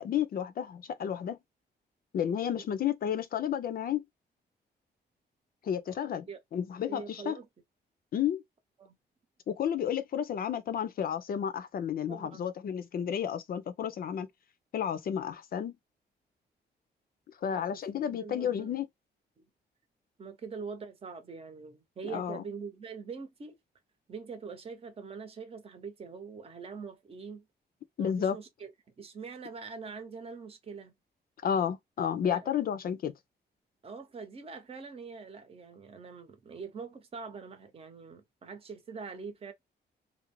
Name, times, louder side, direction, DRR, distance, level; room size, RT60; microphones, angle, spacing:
voice 1, 0.0-1.4 2.1-4.0 5.6-7.4 8.1-8.4 9.5-14.3 14.7-15.7 17.4-18.9 22.1-22.4 28.0-28.4 31.4-33.1, left 9 dB, 55° left, 0.6 m, -31 dB
voice 2, 6.9-7.5 8.8-9.0 12.1-12.5 17.4-17.8 18.1-18.8 19.4-19.5 20.2-23.6 24.1-27.5 28.0-28.7 29.0-30.9 32.2-32.5 33.8-39.5, right 5 dB, 35° right, 0.8 m, -43 dB
2.5 x 2.0 x 3.0 m
cardioid pair, 145°, 18 cm